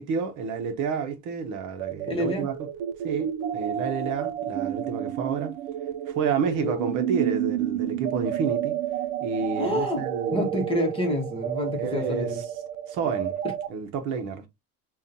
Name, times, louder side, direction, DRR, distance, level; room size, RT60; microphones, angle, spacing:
voice 1, 0.0-2.5 3.0-3.3 3.5-5.5 6.1-8.7 9.2-10.5 11.8-12.3 12.9-13.4 13.7-14.5, right 5 dB, 55° right, 0.8 m, -29 dB
sound 1, 1.8-13.7, right 11 dB, 80° right, 0.5 m, -30 dB
voice 2, 2.1-2.5 6.6-6.9 9.6-10.0 10.3-12.3 13.4-13.5, left 1 dB, 15° left, 0.9 m, -28 dB
5.5 x 2.3 x 2.7 m
cardioid pair, 170°, 38 cm